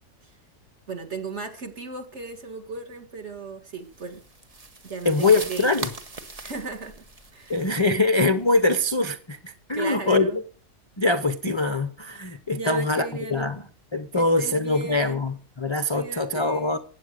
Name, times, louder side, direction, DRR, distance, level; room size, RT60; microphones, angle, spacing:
voice 1, 0.9-4.2 4.8-5.7 6.4-7.0 7.3-8.0 9.7-10.4 12.5-13.5 14.1-15.2 15.9-16.8, right 4 dB, 45° right, 5 dB, 2.1 m, -36 dB
sound 1, 3.9-8.8, right 3 dB, 25° right, 1.1 m, -40 dB
voice 2, 5.0-5.9 7.5-10.3 11.0-13.6 13.9-16.8, left 2 dB, 30° left, 11 dB, 0.5 m, -23 dB
15.5 x 9.1 x 6.5 m, 0.42 s
omnidirectional pair, 1.6 m